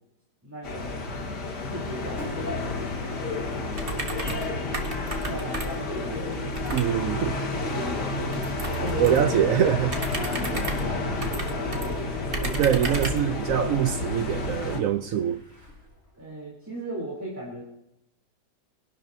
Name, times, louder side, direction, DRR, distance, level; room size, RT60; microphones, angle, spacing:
voice 1, 0.4-1.1 1.6-3.3 3.9-4.6 5.3-6.5 6.9-7.0 7.6-8.5 8.8-9.5 10.2-13.0 16.2-17.6, equal, 10° right, 3.3 m, -38 dB
sound 1, 0.6-14.8, left 3 dB, 85° left, 2.3 m, -31 dB
Engine, 2.1-16.0, left 2 dB, 50° left, 3.6 m, -37 dB
sound 2, 3.7-4.5 4.7-5.9 6.6-6.9 8.3-9.3 9.9-11.9 12.3-13.3, right 3 dB, 35° right, 1.7 m, -33 dB
voice 2, 6.7-7.4 9.0-9.9 12.6-15.4, right 10 dB, 65° right, 0.9 m, -24 dB
24.0 x 11.5 x 2.7 m
omnidirectional pair, 1.8 m